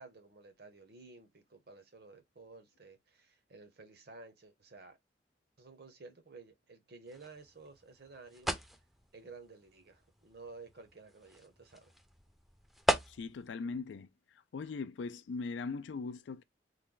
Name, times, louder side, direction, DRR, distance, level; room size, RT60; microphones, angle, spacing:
voice 1, 0.0-5.0 5.6-8.5 9.1-11.9, right 3 dB, 60° right, 1.0 m, -53 dB
sound 1, 7.1-13.5, equal, ahead, 0.5 m, -39 dB
voice 2, 13.1-14.1 14.5-16.4, left 4 dB, 85° left, 0.4 m, -40 dB
3.3 x 2.2 x 3.8 m
head